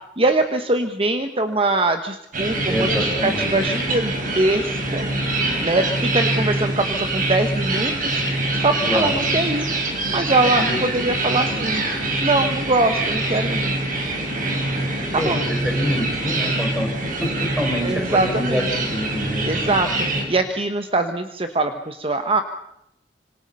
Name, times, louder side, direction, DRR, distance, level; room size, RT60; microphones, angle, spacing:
voice 1, 0.2-8.2 8.5-9.7 10.1-11.8 12.2-13.7 15.1-15.4 17.8-18.7 19.4-22.4, right 2 dB, 30° right, 7 dB, 1.2 m, -23 dB
sound 1, 2.3-20.3, right 2 dB, 50° right, 5.4 m, -24 dB
voice 2, 2.7-3.5 8.8-9.2 10.6-10.8 11.5-11.6 15.1-16.9 17.2-17.3 17.6-19.8, left 1 dB, 5° right, 2 dB, 5.0 m, -26 dB
26.0 x 25.5 x 5.5 m, 0.80 s
head